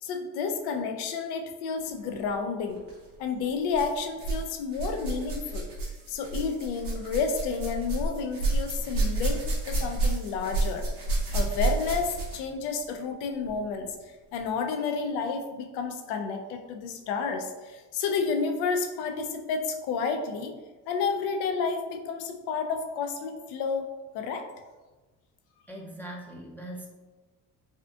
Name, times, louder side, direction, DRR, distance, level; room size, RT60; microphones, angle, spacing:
voice 1, 0.0-2.8 3.2-5.7 6.1-10.8 11.3-13.9 14.3-20.5 20.9-23.9 24.1-24.4, left 5 dB, 80° left, 5 dB, 0.5 m, -30 dB
sound 1, 2.8-3.0 3.7-4.5 4.7-12.5 13.5-13.6 14.3-14.4, right 2 dB, 80° right, 1.2 m, -30 dB
voice 2, 25.7-26.9, right 1 dB, 5° left, -2 dB, 0.5 m, -40 dB
3.5 x 2.5 x 2.3 m, 1.2 s
supercardioid pair, 70°, 39 cm